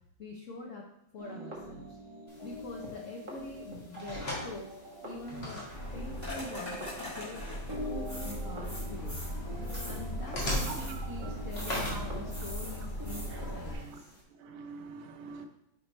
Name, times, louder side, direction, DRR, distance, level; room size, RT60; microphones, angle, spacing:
voice 1, 0.2-0.8 1.1-2.0 2.4-4.7 5.0-7.6 7.9-9.2 9.8-14.0, left 2 dB, 75° left, 0.7 m, -45 dB
sound 1, 1.2-13.7, equal, 15° right, 1.2 m, -45 dB
sound 2, 2.3-14.2, equal, 35° left, 1.6 m, -42 dB
sound 3, 5.7-13.7, equal, 10° left, 2.5 m, -38 dB
voice 2, 10.6-11.3 11.9-12.1 13.3-13.4 13.7-14.0 14.4-15.5, right 5 dB, 85° right, 1.6 m, -45 dB
5.4 x 4.9 x 4.2 m
omnidirectional pair, 2.2 m